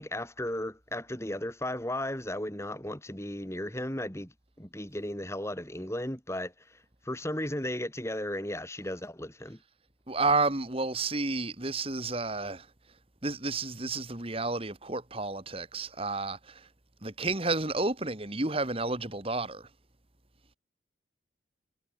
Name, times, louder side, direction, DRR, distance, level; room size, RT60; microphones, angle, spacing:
voice 1, 0.0-6.8 7.0-9.6, left 1 dB, 15° left, 3.4 m, -35 dB
voice 2, 10.1-12.7 13.2-16.7 17.0-19.7, right 3 dB, 30° right, 2.0 m, -31 dB
head